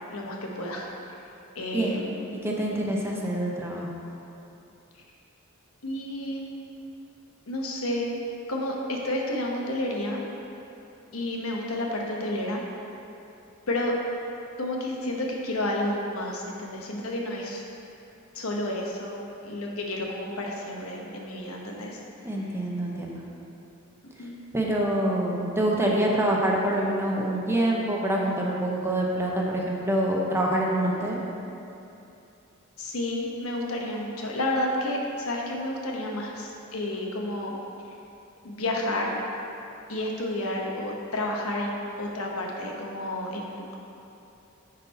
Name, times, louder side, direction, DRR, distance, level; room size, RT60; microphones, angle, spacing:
voice 1, 0.1-0.9 1.5-2.2 5.8-6.4 7.5-8.2 8.5-10.2 11.1-12.6 13.7-13.9 14.6-17.6 18.3-19.2 19.4-22.0 24.2-24.3 32.8-37.5 38.4-39.2 39.9-43.7, left 1 dB, 90° left, -1 dB, 1.0 m, -30 dB
voice 2, 2.4-3.9 22.2-23.2 24.5-31.2, right 1 dB, 10° right, -2 dB, 0.8 m, -26 dB
9.6 x 4.0 x 4.2 m, 2.8 s
head